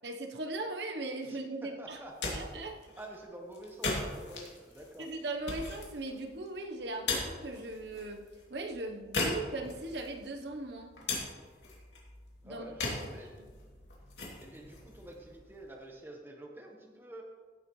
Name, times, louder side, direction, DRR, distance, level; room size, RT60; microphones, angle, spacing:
voice 1, 0.0-2.0 2.3-2.9 5.0-8.2 8.5-10.9 12.4-12.7 13.0-13.1 13.4-13.5, right 2 dB, 75° right, 3 dB, 1.0 m, -39 dB
voice 2, 1.8-2.3 3.0-5.1 12.4-13.4 14.4-17.2, right 1 dB, 10° right, 1 dB, 1.2 m, -48 dB
sound 1, 1.9-15.9, left 2 dB, 80° left, 2.7 m, -40 dB
15.5 x 8.0 x 3.2 m, 1.5 s
head